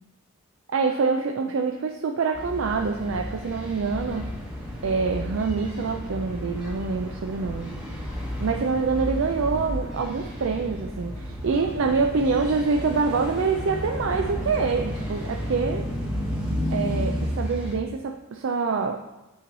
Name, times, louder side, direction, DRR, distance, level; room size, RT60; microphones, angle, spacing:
voice 1, 0.7-4.3 4.8-7.7 8.4-15.9 16.7-19.0, right 4 dB, 60° right, 3 dB, 0.4 m, -26 dB
sound 1, 2.3-17.8, equal, 5° right, 1.0 m, -32 dB
8.6 x 3.1 x 3.9 m, 1.0 s
head